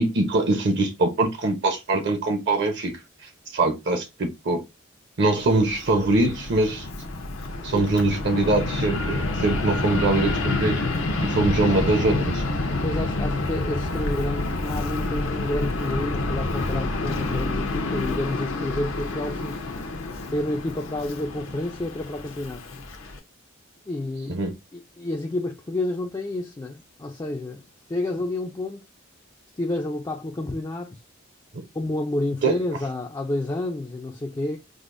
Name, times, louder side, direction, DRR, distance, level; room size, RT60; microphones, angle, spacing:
voice 1, 0.0-2.9 3.5-4.6 5.2-6.9 7.6-10.8 11.2-12.4 24.3-24.5 31.5-31.6 32.4-32.6, right 2 dB, 55° right, 0.7 m, -23 dB
Fixed-wing aircraft airplane, 5.4-23.2, left 2 dB, 80° left, 0.7 m, -28 dB
voice 2, 12.7-19.6 20.3-22.8 23.9-24.4 24.7-27.6 27.9-28.8 29.6-31.0 31.7-34.6, left 1 dB, 20° left, 0.3 m, -30 dB
4.9 x 2.0 x 2.5 m
head